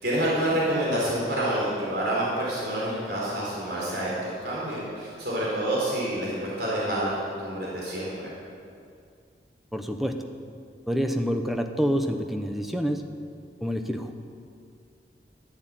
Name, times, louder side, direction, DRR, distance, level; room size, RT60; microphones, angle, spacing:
voice 1, 0.0-8.1, right 1 dB, 65° right, -6 dB, 4.5 m, -28 dB
voice 2, 9.7-10.2 10.9-13.0 13.6-14.1, equal, ahead, 4 dB, 0.9 m, -27 dB
13.0 x 11.0 x 9.1 m, 2.4 s
head